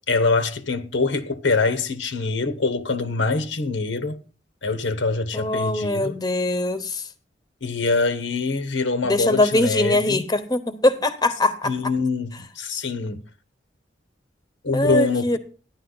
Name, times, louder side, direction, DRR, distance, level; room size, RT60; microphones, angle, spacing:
voice 1, 0.1-4.2 4.6-6.2 7.6-10.2 11.6-13.2 14.6-15.4, left 3 dB, 80° left, 1.2 m, -24 dB
voice 2, 5.3-7.0 9.0-11.9 14.7-15.4, left 2 dB, 20° left, 1.0 m, -22 dB
14.5 x 10.5 x 4.0 m
head